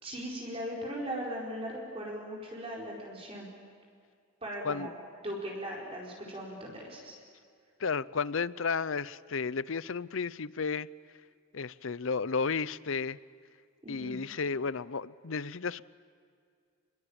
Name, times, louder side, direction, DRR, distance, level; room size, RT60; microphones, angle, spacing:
voice 1, 0.0-3.5 4.4-4.9 5.2-7.2 13.8-14.2, equal, 25° right, -3 dB, 4.7 m, -39 dB
voice 2, 7.8-10.9 11.5-13.2 13.9-15.8, left 5 dB, 65° left, 18 dB, 0.6 m, -33 dB
30.0 x 22.0 x 8.9 m, 2.2 s
head